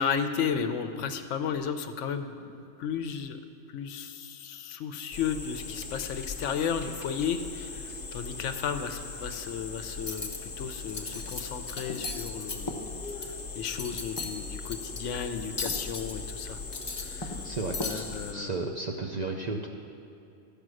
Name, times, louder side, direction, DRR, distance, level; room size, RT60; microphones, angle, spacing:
voice 1, 0.0-2.4 2.8-3.4 3.7-12.8 13.5-16.6 17.0-17.3 17.8-18.6, left 7 dB, 75° left, 9 dB, 0.9 m, -33 dB
sound 1, 5.1-18.3, left 4 dB, 45° left, 1.2 m, -40 dB
Cutlery silverware, 9.9-10.4 10.8-11.4 11.7-13.3 13.6-14.3 14.7-15.0 15.6-16.1 16.6-17.4 17.7-18.0, left 3 dB, 30° left, 0.5 m, -36 dB
voice 2, 17.4-18.1 18.3-19.7, right 3 dB, 50° right, 1 dB, 0.5 m, -33 dB
13.5 x 5.2 x 6.2 m, 2.7 s
omnidirectional pair, 1.3 m